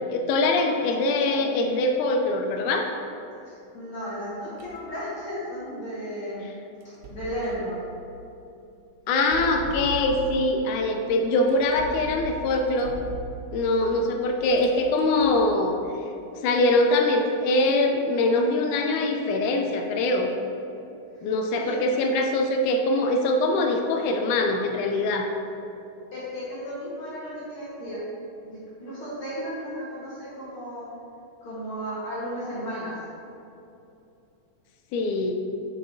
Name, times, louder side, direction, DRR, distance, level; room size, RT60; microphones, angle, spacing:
voice 1, 0.1-2.9 9.1-12.9 13.5-15.8 16.4-20.3 21.2-25.3 34.9-35.4, left 2 dB, 80° left, 3 dB, 1.9 m, -23 dB
voice 2, 3.5-6.5 6.8-7.8 21.1-21.7 26.1-28.0 28.4-30.9 31.4-33.0, equal, 55° left, -9 dB, 1.7 m, -34 dB
sound 1, 4.6-4.9 6.8-7.7 9.2-10.5 11.5-13.7 14.4-15.5, right 4 dB, 90° right, 2.2 m, -39 dB
7.4 x 4.8 x 2.6 m, 2.8 s
omnidirectional pair, 3.7 m